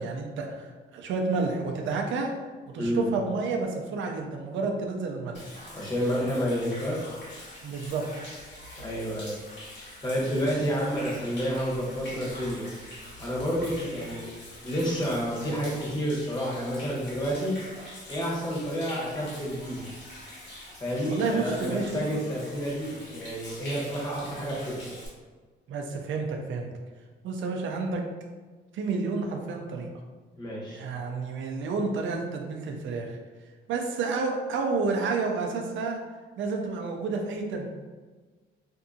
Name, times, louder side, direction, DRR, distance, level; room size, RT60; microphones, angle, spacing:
voice 1, 0.0-2.3 2.7-5.4 7.6-8.0 21.1-22.0 25.7-26.7 27.2-28.0 28.7-29.9 30.7-33.2 33.7-36.0 36.4-37.7, right 4 dB, 75° right, 2 dB, 0.5 m, -30 dB
Human voice / Rain / Stream, 5.3-25.1, left 1 dB, 65° left, 1.2 m, -44 dB
voice 2, 5.7-7.2 8.8-9.4 10.0-12.7 13.2-14.3 14.6-17.6 18.1-19.9 20.8-24.9 30.4-30.8, equal, 20° left, -5 dB, 1.0 m, -30 dB
2.6 x 2.6 x 2.4 m, 1.4 s
cardioid pair, 90°, 20 cm